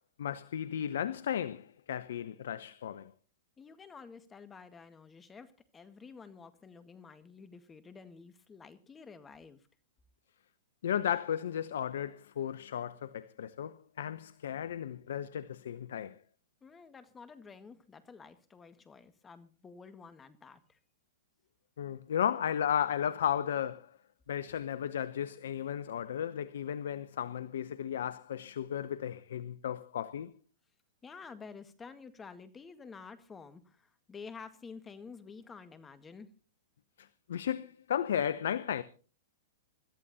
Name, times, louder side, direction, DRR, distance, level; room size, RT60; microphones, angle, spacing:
voice 1, 0.2-3.1 10.8-16.2 21.8-23.9 24.3-30.3 37.0-38.8, left 9 dB, 75° left, 0.7 m, -34 dB
voice 2, 3.6-9.7 16.6-20.8 31.0-36.3, left 5 dB, 20° left, 1.7 m, -50 dB
25.0 x 14.0 x 2.8 m
hypercardioid pair, 115°, 0 cm